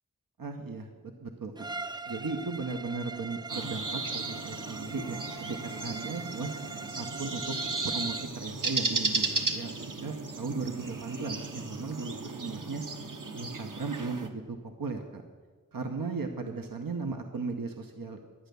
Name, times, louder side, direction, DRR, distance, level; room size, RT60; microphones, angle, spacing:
voice 1, 0.4-0.9 1.2-1.7 2.1-5.2 5.5-6.5 7.0-7.5 7.8-9.7 10.0-12.8 13.4-15.2 15.7-18.2, right 4 dB, 85° right, 4 dB, 0.9 m, -36 dB
Bowed string instrument, 1.6-8.4, right 3 dB, 15° right, 0.3 m, -42 dB
sound 1, 3.5-14.3, right 3 dB, 70° right, 1.1 m, -35 dB
11.5 x 9.2 x 6.8 m, 1.4 s
wide cardioid pair, 45°, 34 cm